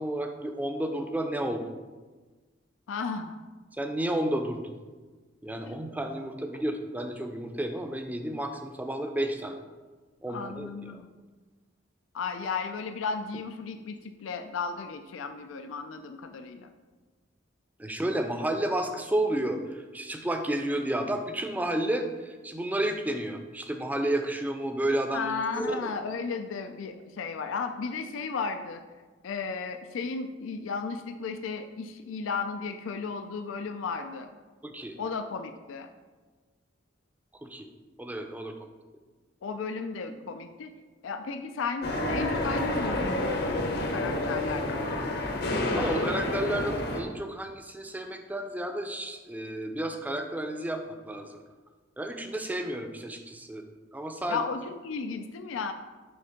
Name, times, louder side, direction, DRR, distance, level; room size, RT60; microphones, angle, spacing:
voice 1, 0.0-1.6 3.8-4.7 5.4-9.6 10.2-10.9 17.8-25.3 25.6-25.9 34.6-35.0 37.4-37.7 38.0-38.7 45.7-51.4 52.0-53.6 53.9-54.4, right 1 dB, 10° right, 5 dB, 0.4 m, -31 dB
voice 2, 2.9-3.4 5.7-5.8 10.3-11.1 12.1-16.7 25.1-28.8 29.2-34.4 35.0-35.9 39.4-40.7 41.0-44.8 54.3-55.7, left 5 dB, 90° left, 7 dB, 0.4 m, -34 dB
sound 1, 41.8-47.0, left 1 dB, 55° left, 0.9 m, -29 dB
6.4 x 3.3 x 5.7 m, 1.3 s
head